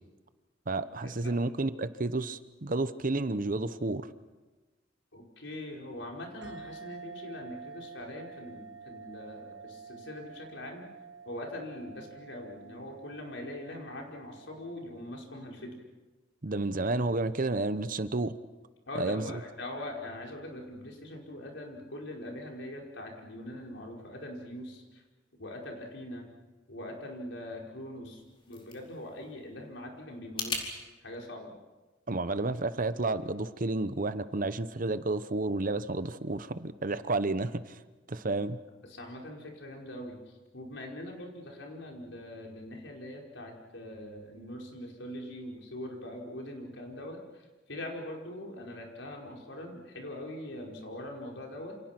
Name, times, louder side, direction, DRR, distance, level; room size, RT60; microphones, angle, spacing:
voice 1, 0.7-4.1 16.4-18.3 18.9-19.2 32.1-37.8 38.1-38.6, right 2 dB, 45° right, 13 dB, 0.9 m, -31 dB
voice 2, 5.1-10.8 11.3-15.8 18.9-25.0 25.4-26.3 26.7-28.2 28.5-30.6 31.0-31.5 38.2-38.3 38.9-51.8, left 1 dB, 75° left, 0 dB, 5.3 m, -42 dB
sound 1, 6.4-15.5, right 5 dB, 75° right, 2.1 m, -49 dB
sound 2, 28.0-30.7, left 3 dB, 30° left, 4.5 m, -40 dB
28.5 x 28.0 x 6.1 m, 1.2 s
head